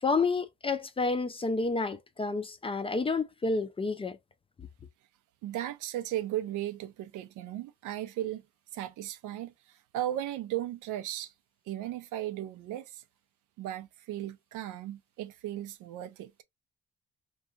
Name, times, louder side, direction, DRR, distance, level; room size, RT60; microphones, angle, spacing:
voice 1, 0.0-4.2 4.6-4.7, left 3 dB, 20° left, 0.3 m, -30 dB
voice 2, 5.4-8.4 8.7-11.3 11.7-13.0 13.6-16.3, right 13 dB, 90° right, 0.5 m, -36 dB
2.7 x 2.2 x 2.2 m
cardioid pair, 90°, 30 cm